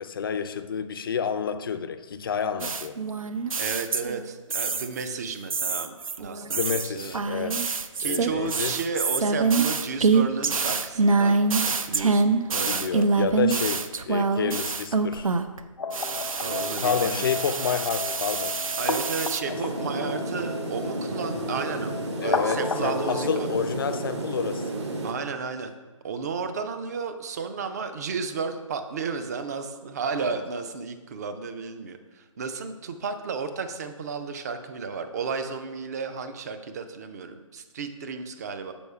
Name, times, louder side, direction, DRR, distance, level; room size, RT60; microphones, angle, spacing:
voice 1, 0.0-3.0 6.5-7.6 8.0-8.7 12.7-15.3 16.8-18.6 22.2-24.7 30.2-30.4, left 6 dB, 40° left, 10 dB, 0.4 m, -29 dB
sound 1, 2.6-4.2 4.5-5.1 5.5-15.6 15.9-19.4, right 4 dB, 85° right, 0.5 m, -25 dB
voice 2, 3.6-7.2 8.0-11.4 11.9-13.1 16.4-17.3 18.8-21.9 22.2-23.5 25.0-25.7 26.0-38.7, right 5 dB, 30° right, 8 dB, 0.5 m, -33 dB
sound 2, 15.8-23.4, left 4 dB, 75° left, 0.9 m, -33 dB
sound 3, 19.4-25.1, right 2 dB, 55° right, 1.0 m, -32 dB
7.0 x 4.8 x 4.6 m, 1.3 s
figure-of-eight pair, 150°, 17 cm